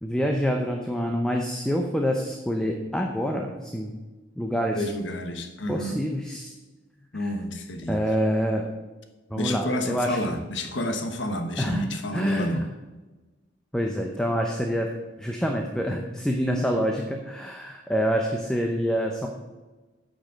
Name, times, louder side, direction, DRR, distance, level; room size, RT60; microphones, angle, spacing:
voice 1, 0.0-3.9 4.4-4.8 5.7-6.5 7.1-7.3 7.9-8.7 9.3-10.2 11.6-11.9 12.1-12.6 13.7-14.9 15.2-19.3, equal, 5° left, 2 dB, 0.7 m, -26 dB
voice 2, 4.7-6.0 7.1-8.0 9.4-12.7, left 1 dB, 70° left, 6 dB, 1.2 m, -30 dB
9.1 x 5.3 x 7.6 m, 1.2 s
head